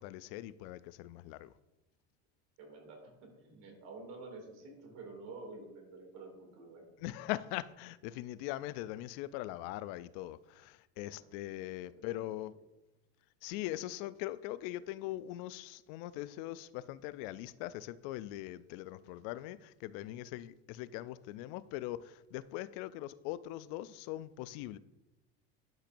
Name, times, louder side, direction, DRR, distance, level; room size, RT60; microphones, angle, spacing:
voice 1, 0.0-1.5 7.0-12.5 13.4-24.8, left 15 dB, 65° left, 0.5 m, -41 dB
voice 2, 2.6-6.9 11.1-11.5 11.8-12.6, right 3 dB, 60° right, 2.6 m, -50 dB
11.5 x 5.7 x 2.6 m
supercardioid pair, 115°, 32 cm